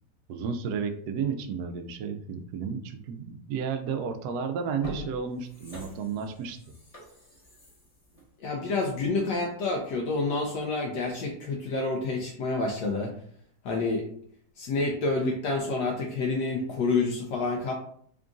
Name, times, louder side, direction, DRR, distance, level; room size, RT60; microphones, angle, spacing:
voice 1, 0.3-6.6, right 6 dB, 70° right, 6 dB, 0.9 m, -32 dB
sound 1, 4.0-4.2 4.6-9.3 9.7-9.8, right 1 dB, 30° left, 0.8 m, -43 dB
voice 2, 8.4-13.1 13.6-14.0 14.6-17.7, left 3 dB, 75° left, 0 dB, 1.2 m, -28 dB
3.7 x 2.4 x 3.7 m, 0.62 s
omnidirectional pair, 2.0 m